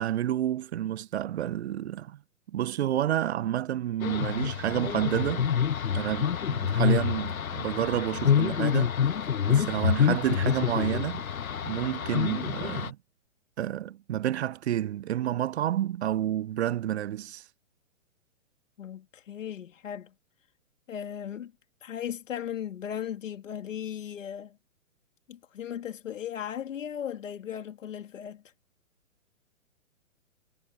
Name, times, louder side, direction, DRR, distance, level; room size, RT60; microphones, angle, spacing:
voice 1, 0.0-2.2 2.5-5.5 5.9-8.9 9.5-11.2 11.6-13.0 13.6-17.4, right 12 dB, 55° right, 0.6 m, -29 dB
sound 1, 4.0-12.9, left 8 dB, 90° left, 1.1 m, -27 dB
voice 2, 18.8-20.1 20.9-21.5 21.8-24.6 25.3-28.4, left 9 dB, 65° left, 2.8 m, -37 dB
hypercardioid pair, 135°, 40 cm